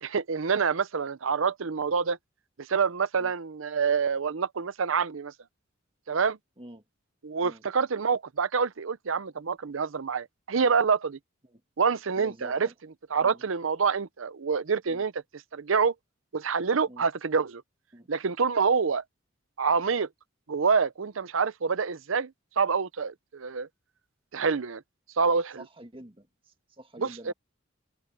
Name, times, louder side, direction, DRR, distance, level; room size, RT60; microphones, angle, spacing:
voice 1, 0.0-2.2 2.7-5.3 6.1-6.4 7.2-11.2 11.8-12.7 13.1-15.1 15.5-15.9 16.3-17.6 18.1-19.0 19.6-20.1 20.5-23.7 24.3-24.8 25.2-25.6 27.0-27.3, right 5 dB, 75° right, 0.7 m, -26 dB
voice 2, 12.2-12.7 13.2-13.4 14.9-15.1 16.9-17.1 17.9-18.1 25.6-27.3, right 1 dB, 25° right, 1.9 m, -47 dB
open air
head